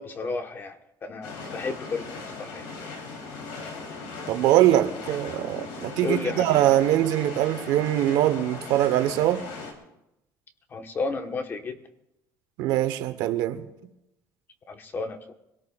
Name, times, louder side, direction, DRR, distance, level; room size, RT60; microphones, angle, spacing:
voice 1, 0.0-2.0 2.4-2.7 6.0-6.6 10.7-11.8 14.7-15.3, left 3 dB, 30° left, 1.4 m, -32 dB
sound 1, 1.2-9.7, left 4 dB, 85° left, 3.6 m, -38 dB
voice 2, 4.3-9.5 12.6-13.7, right 13 dB, 80° right, 1.1 m, -22 dB
25.0 x 18.0 x 2.5 m
cardioid pair, 125°, 7 cm